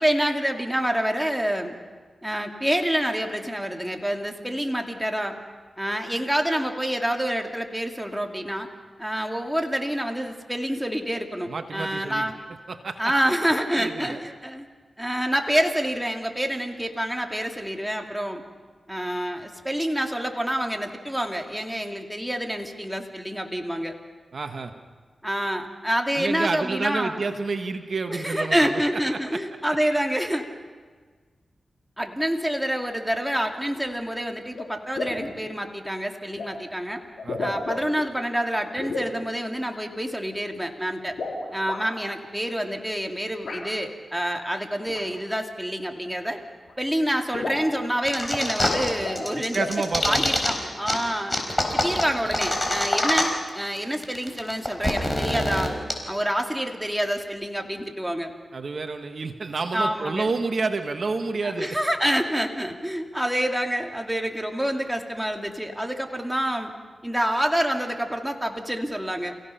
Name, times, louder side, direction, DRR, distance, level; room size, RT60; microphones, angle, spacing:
voice 1, 0.0-1.8 2.2-5.4 5.8-8.7 9.0-12.4 13.0-14.7 15.0-18.4 18.9-23.9 25.2-27.2 28.1-30.5 32.0-37.0 37.4-41.1 41.5-46.4 46.8-49.6 50.0-51.4 51.7-55.7 56.1-58.3 59.7-60.3 61.4-66.7 67.0-69.3, equal, 5° right, 3 dB, 2.5 m, -27 dB
voice 2, 11.5-12.3 12.7-13.1 13.8-14.2 24.3-24.7 26.1-28.8 29.1-29.4 37.2-37.5 49.5-50.3 58.5-61.7, right 4 dB, 65° right, 6 dB, 1.5 m, -29 dB
sound 1, 33.8-33.9 34.5-34.7 35.0-35.3 36.4-36.5 37.2-38.1 38.8-39.1 41.1-41.8 43.5-43.6 44.9-45.0 46.2-46.3 46.7-46.8 47.0-47.1 47.3-47.7 48.6-49.3 49.6-49.8, left 3 dB, 85° left, 4.4 m, -32 dB
sound 2, 48.1-48.9 49.2-50.5 50.9-51.0 51.3-53.5 53.8-53.9 54.0-55.9, left 1 dB, 25° left, 4.6 m, -24 dB
29.5 x 16.5 x 5.8 m, 1.5 s
cardioid pair, 55°, 0 cm